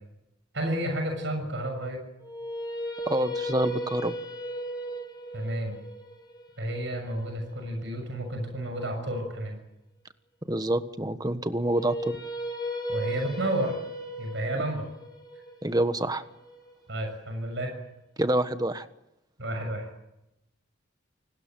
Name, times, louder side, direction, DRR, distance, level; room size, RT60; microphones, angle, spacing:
voice 1, 0.5-2.0 5.3-5.8 6.6-9.6 12.9-13.8 14.2-14.9 16.9-17.7 19.4-19.9, right 1 dB, 70° right, 5 dB, 6.8 m, -31 dB
sound 1, 2.2-8.3 11.6-17.6, equal, 20° left, 6.1 m, -36 dB
voice 2, 3.1-4.1 10.5-12.2 15.6-16.2 18.2-18.9, right 1 dB, 20° right, 10 dB, 1.3 m, -27 dB
28.5 x 19.5 x 7.7 m, 0.89 s
head